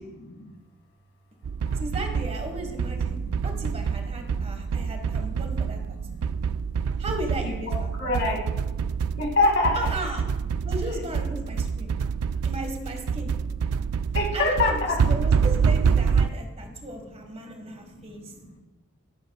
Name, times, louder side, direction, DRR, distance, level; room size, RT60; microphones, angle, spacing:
sound 1, 1.4-16.3, right 6 dB, 75° right, 0.4 m, -27 dB
voice 1, 1.7-5.8 7.0-8.1 9.7-10.2 10.6-11.9 12.4-13.3 14.3-18.2, right 1 dB, 30° right, 4 dB, 1.6 m, -35 dB
voice 2, 3.1-3.7 4.2-5.4 5.8-6.4 7.4-8.7 9.1-9.8 11.4-12.5 13.7-13.8 14.1-15.0 16.7-16.9 17.4-18.6, left 2 dB, 60° left, 0 dB, 2.5 m, -29 dB
14.5 x 12.5 x 2.4 m, 1.1 s
head